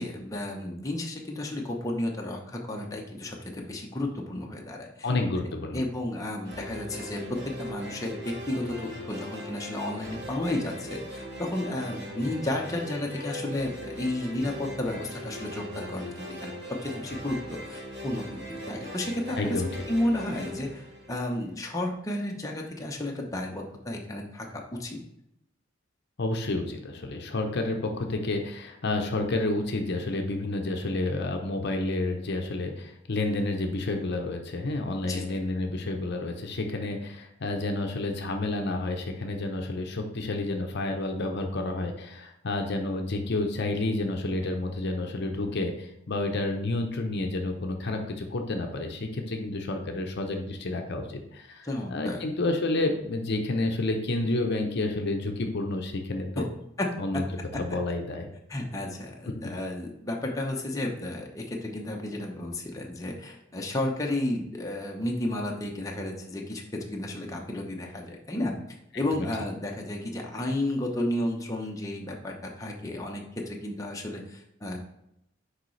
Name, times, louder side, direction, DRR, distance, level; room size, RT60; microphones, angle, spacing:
voice 1, 0.0-5.1 5.7-7.2 7.6-16.5 16.8-19.6 19.9-24.5 24.7-25.0 35.1-35.4 51.6-52.2 56.4-56.5 56.8-56.9 58.5-68.5 68.9-74.8, left 1 dB, 15° left, 0 dB, 0.8 m, -32 dB
voice 2, 5.0-5.8 19.4-19.8 26.2-56.5 57.0-57.2 57.6-58.3 69.2-69.3, left 2 dB, 60° left, 4 dB, 0.7 m, -30 dB
sound 1, 6.4-21.7, equal, 60° right, 1.6 m, -40 dB
6.5 x 4.8 x 3.2 m, 0.80 s
head